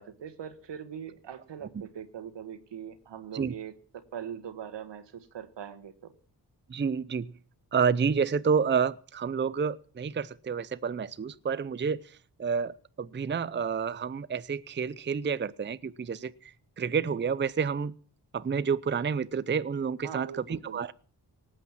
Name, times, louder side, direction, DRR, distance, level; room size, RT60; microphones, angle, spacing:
voice 1, 0.0-3.7 4.1-6.1 20.0-20.8, right 8 dB, 80° right, 1.7 m, -41 dB
voice 2, 6.7-7.3 7.7-17.9 18.3-20.9, right 6 dB, 25° right, 0.6 m, -29 dB
18.5 x 8.7 x 7.4 m
cardioid pair, 90°, 42 cm